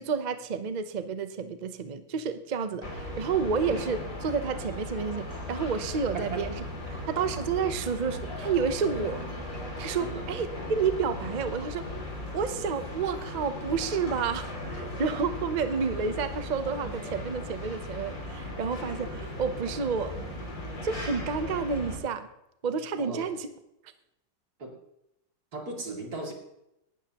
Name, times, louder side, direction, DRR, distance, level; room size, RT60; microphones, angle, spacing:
voice 1, 0.0-6.6 7.1-9.2 9.8-11.9 12.3-20.2 20.8-22.3 22.6-23.5, right 5 dB, 75° right, 10 dB, 0.4 m, -30 dB
sound 1, 2.8-22.0, left 1 dB, 45° left, 3.1 m, -37 dB
voice 2, 23.0-23.3 24.6-24.7 25.5-26.3, right 2 dB, 55° right, 0 dB, 3.1 m, -37 dB
18.5 x 12.0 x 3.0 m, 0.84 s
omnidirectional pair, 2.0 m